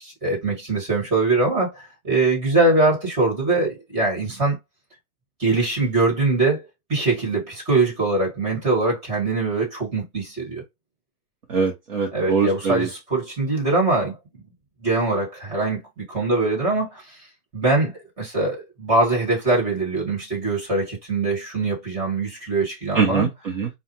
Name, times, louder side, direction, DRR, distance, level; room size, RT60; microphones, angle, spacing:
voice 1, 0.0-4.6 5.4-6.6 6.9-10.6 12.1-14.4 14.8-17.2 17.5-23.3, right 2 dB, 15° right, 1.7 m, -22 dB
voice 2, 11.5-12.9 22.9-23.7, right 5 dB, 35° right, 0.9 m, -22 dB
4.8 x 2.2 x 2.9 m
hypercardioid pair, 165°, 45 cm